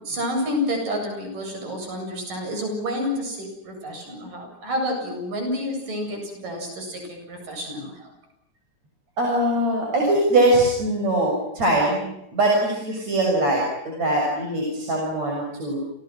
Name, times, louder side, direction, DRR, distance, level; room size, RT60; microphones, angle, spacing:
voice 1, 0.0-8.1, left 1 dB, 80° right, 3 dB, 9.7 m, -29 dB
voice 2, 9.2-12.1 12.3-15.8, right 1 dB, 55° right, -1 dB, 7.8 m, -22 dB
29.5 x 29.5 x 6.2 m, 0.85 s
omnidirectional pair, 3.7 m